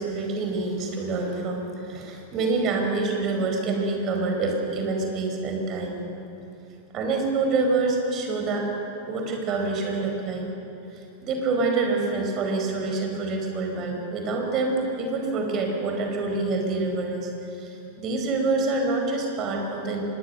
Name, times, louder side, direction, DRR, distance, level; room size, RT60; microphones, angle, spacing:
voice 1, 0.0-6.0 6.9-8.7 9.1-10.4 10.9-20.0, right 3 dB, 35° right, 2 dB, 5.0 m, -26 dB
25.5 x 21.0 x 6.7 m, 2.9 s
figure-of-eight pair, 90°, 0 cm